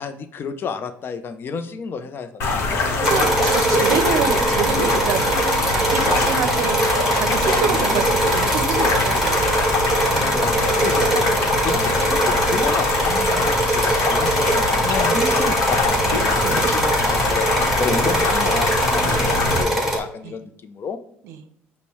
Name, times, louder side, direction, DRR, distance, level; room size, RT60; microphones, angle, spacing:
voice 1, 0.0-2.7 10.1-10.5 10.8-11.1 11.6-17.5 17.8-21.0, left 5 dB, 45° left, 10 dB, 0.5 m, -31 dB
sound 1, 2.4-19.6, left 3 dB, 60° left, 1.0 m, -23 dB
voice 2, 2.6-5.2 5.7-9.7 11.2-11.4 14.0-14.1 16.4-16.7 17.6-17.7 19.0-19.4 20.2-20.4 21.2-21.4, right 7 dB, 70° right, 9 dB, 0.5 m, -28 dB
sound 2, 3.0-20.0, right 2 dB, 5° right, 1.3 m, -22 dB
5.3 x 2.1 x 4.3 m, 0.70 s
supercardioid pair, 70°, 5 cm